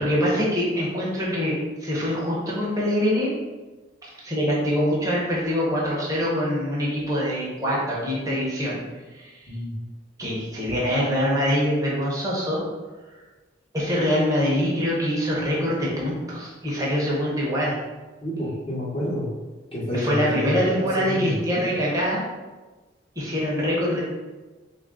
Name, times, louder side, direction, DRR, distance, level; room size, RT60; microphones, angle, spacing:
voice 1, 0.0-1.6 1.8-3.3 4.2-8.8 10.2-12.6 13.7-17.8 19.9-22.2 23.2-24.0, equal, 15° right, -6 dB, 0.9 m, -24 dB
voice 2, 18.2-19.3 19.7-21.7, equal, 30° left, -7 dB, 1.2 m, -29 dB
3.5 x 2.6 x 3.6 m, 1.2 s
head